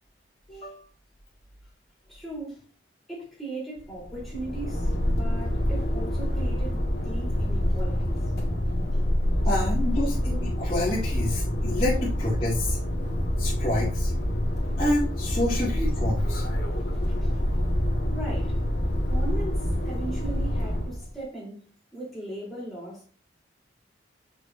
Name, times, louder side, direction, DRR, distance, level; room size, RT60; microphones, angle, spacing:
voice 1, 0.5-0.8 9.5-12.8 13.4-14.1 14.8-16.4, left 1 dB, 30° left, 2.1 m, -28 dB
voice 2, 2.1-2.7 3.1-8.3 8.9-9.0 16.7-16.8 17.1-17.3 18.1-18.6 19.1-23.1, right 2 dB, ahead, 3.5 m, -38 dB
sound 1, 3.8-21.1, equal, 65° left, 1.7 m, -26 dB
6.6 x 6.3 x 2.6 m
head